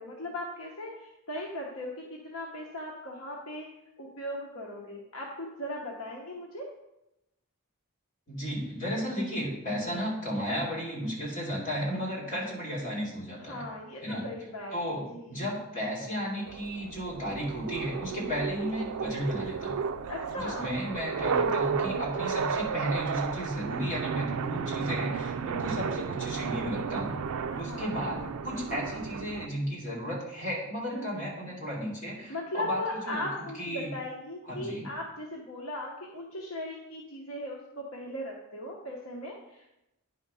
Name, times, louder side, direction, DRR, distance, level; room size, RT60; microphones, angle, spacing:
voice 1, 0.0-3.7 4.0-6.7 9.7-10.0 13.5-15.3 18.1-18.3 20.1-20.7 21.8-22.1 25.4-25.7 27.5-28.6 30.9-31.3 32.3-39.7, left 1 dB, 65° left, -1 dB, 1.0 m, -38 dB
voice 2, 8.3-13.6 14.0-14.3 14.7-19.8 20.3-27.1 27.6-28.2 28.4-33.2 33.6-33.9 34.4-34.9, equal, 35° left, -3 dB, 2.6 m, -34 dB
sound 1, 16.5-29.5, right 6 dB, 75° right, 0.4 m, -33 dB
9.4 x 3.6 x 5.5 m, 0.90 s
head